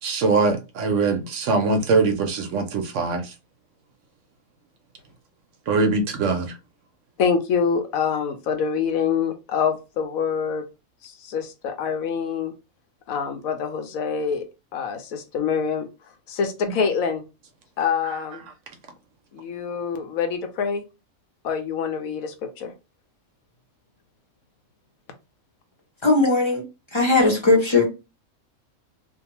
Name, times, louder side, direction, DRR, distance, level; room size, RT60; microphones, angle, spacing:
voice 1, 0.0-3.3 5.7-6.6 18.0-18.2, right 4 dB, 70° right, 0.8 m, -22 dB
voice 2, 7.2-10.6 11.0-12.5 13.1-14.4 14.7-15.9 16.3-17.2 17.8-18.4 19.3-20.8 21.4-22.7, left 6 dB, 80° left, 1.0 m, -25 dB
voice 3, 26.0-26.6 26.9-27.8, left 3 dB, 30° left, 0.6 m, -18 dB
2.6 x 2.2 x 2.8 m
omnidirectional pair, 1.5 m